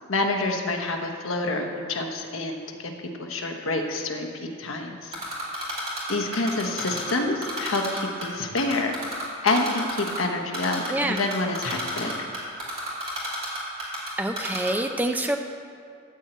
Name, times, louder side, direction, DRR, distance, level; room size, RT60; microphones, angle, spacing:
voice 1, 0.1-2.9 3.2-5.1 6.1-7.8 8.2-8.9 9.4-12.1, left 2 dB, 75° left, 3 dB, 1.1 m, -27 dB
Typing, 5.1-7.1 7.4-8.3 8.6-10.2 10.5-10.9 11.2-14.1 14.4-14.7, right 1 dB, 30° right, 2.5 m, -31 dB
voice 2, 14.2-15.4, right 1 dB, 10° right, 5 dB, 0.3 m, -26 dB
12.5 x 4.4 x 8.0 m, 2.3 s
head